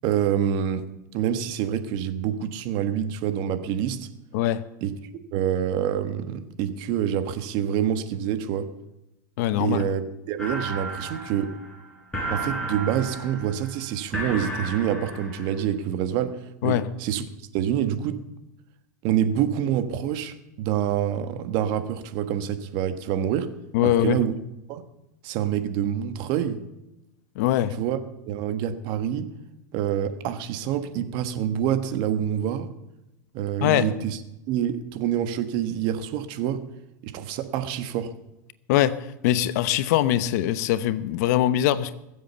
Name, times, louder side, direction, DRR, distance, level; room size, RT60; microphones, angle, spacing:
voice 1, 0.0-4.1 4.8-8.7 9.6-10.0 10.3-11.5 12.3-17.2 17.5-18.2 19.0-23.5 23.8-24.3 24.7-24.8 25.2-26.6 27.8-28.0 28.3-29.3 29.7-32.7 33.3-34.2 34.5-36.6 37.0-38.1, right 9 dB, 50° right, 1.4 m, -26 dB
voice 2, 9.4-9.8 16.6-16.9 23.7-24.2 27.4-27.7 33.6-33.9 38.7-39.0 39.2-41.9, left 13 dB, 65° left, 0.9 m, -22 dB
sound 1, 10.4-15.6, right 1 dB, 10° left, 6.9 m, -33 dB
21.0 x 7.7 x 6.9 m
supercardioid pair, 125°, 10 cm